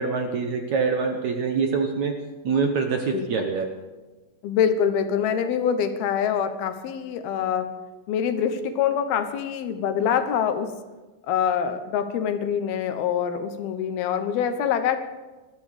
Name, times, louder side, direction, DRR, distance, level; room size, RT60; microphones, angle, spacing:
voice 1, 0.0-2.2 2.4-3.8, right 5 dB, 65° right, 4 dB, 2.0 m, -25 dB
voice 2, 4.4-7.7 8.1-10.7 11.2-15.0, left 8 dB, 75° left, 8 dB, 3.0 m, -25 dB
20.5 x 13.5 x 5.1 m, 1.2 s
omnidirectional pair, 4.5 m